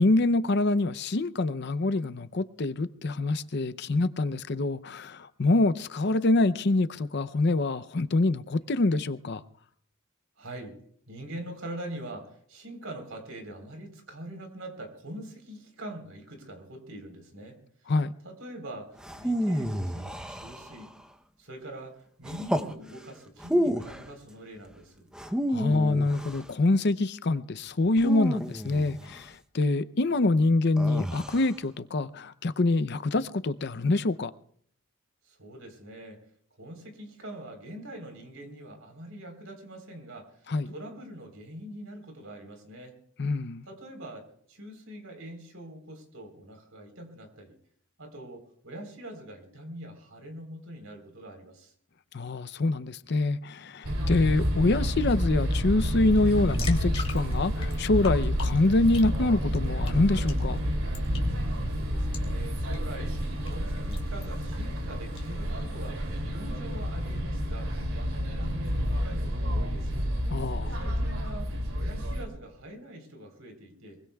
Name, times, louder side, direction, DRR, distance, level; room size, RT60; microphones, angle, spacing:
voice 1, 0.0-9.4 17.9-18.1 25.5-34.3 40.5-40.7 43.2-43.6 52.1-60.6 70.3-70.8, left 2 dB, 55° left, 0.6 m, -25 dB
voice 2, 10.4-10.8 11.1-17.9 18.2-20.9 21.4-25.1 35.2-36.2 36.6-43.0 43.6-47.6 48.0-51.7 61.5-70.1 70.7-74.0, right 1 dB, 70° right, 4.0 m, -44 dB
sound 1, 19.0-21.0 22.2-22.7 23.4-24.1 25.1-26.5 28.0-29.2 30.8-31.5, equal, 5° right, 0.7 m, -30 dB
sound 2, 53.8-72.3, equal, 90° right, 3.0 m, -29 dB
sound 3, 56.1-65.3, left 5 dB, 30° left, 2.9 m, -46 dB
23.5 x 23.0 x 2.3 m
head